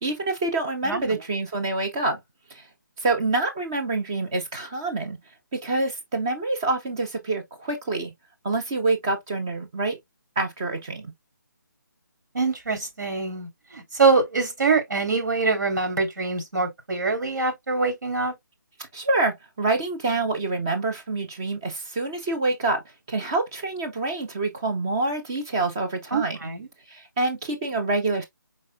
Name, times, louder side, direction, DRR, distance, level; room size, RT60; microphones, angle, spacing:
voice 1, 0.0-2.2 3.0-5.2 5.5-8.1 8.4-10.0 10.4-11.1 18.9-22.8 23.1-26.5 26.9-28.2, right 2 dB, 10° right, 0.5 m, -26 dB
voice 2, 0.8-1.1 12.3-18.3 26.1-26.7, right 4 dB, 65° right, 2.7 m, -24 dB
5.1 x 4.2 x 2.2 m
hypercardioid pair, 175°, 11 cm